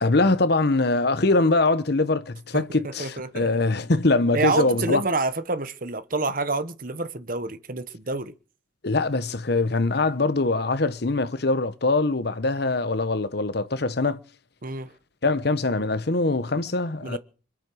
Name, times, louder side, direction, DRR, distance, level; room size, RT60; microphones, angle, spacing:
voice 1, 0.0-5.0 8.8-14.2 15.2-17.2, left 3 dB, 60° left, 1.0 m, -23 dB
voice 2, 2.5-3.5 4.3-8.3 14.6-14.9 17.0-17.2, right 3 dB, 45° right, 1.2 m, -28 dB
25.0 x 8.8 x 6.3 m
head